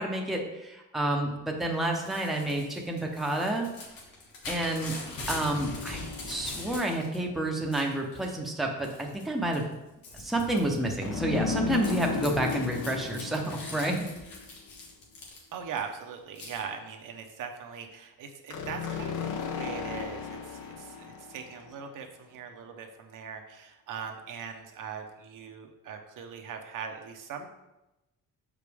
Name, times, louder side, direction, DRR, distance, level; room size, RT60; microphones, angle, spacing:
voice 1, 0.0-3.7 4.5-5.0 5.3-6.0 6.3-9.7 10.2-14.0, right 1 dB, ahead, 1 dB, 0.6 m, -29 dB
Crumpling crinkling / Tearing, 1.9-7.2 7.5-8.3 8.8-9.2 9.5-15.8 16.4-16.6, left 2 dB, 85° left, 1.6 m, -42 dB
sound 1, 5.5-7.1 11.0-14.7 18.5-21.8, left 4 dB, 65° left, 0.8 m, -35 dB
voice 2, 15.5-19.2 19.4-27.5, right 6 dB, 65° right, 4 dB, 0.8 m, -40 dB
5.8 x 4.9 x 3.4 m, 0.97 s
cardioid pair, 140°, 33 cm